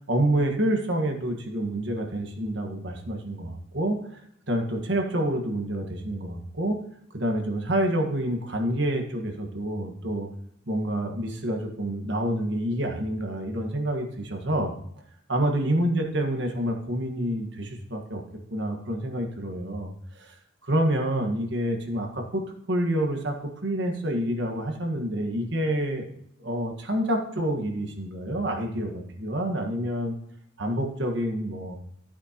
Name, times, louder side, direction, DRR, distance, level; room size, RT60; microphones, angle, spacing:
voice 1, 0.1-4.2 4.5-6.8 7.1-10.3 10.7-14.7 15.3-18.2 18.5-20.4 20.6-26.1 26.4-30.1 30.6-31.8, right 1 dB, 60° right, 2 dB, 1.6 m, -28 dB
14.0 x 8.9 x 3.0 m, 0.68 s
head